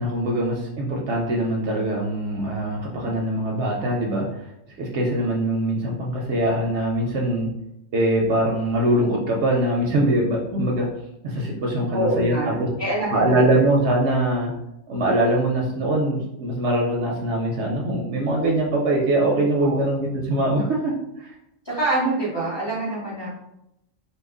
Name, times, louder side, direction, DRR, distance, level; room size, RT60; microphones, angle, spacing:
voice 1, 0.0-4.5 4.8-7.5 7.9-10.9 11.2-12.7 13.1-14.5 14.9-21.3, right 1 dB, 65° right, -1 dB, 0.8 m, -22 dB
voice 2, 11.9-13.6 19.6-19.8 21.6-23.3, right 1 dB, 20° left, -8 dB, 0.9 m, -25 dB
2.8 x 2.3 x 3.7 m, 0.85 s
omnidirectional pair, 1.4 m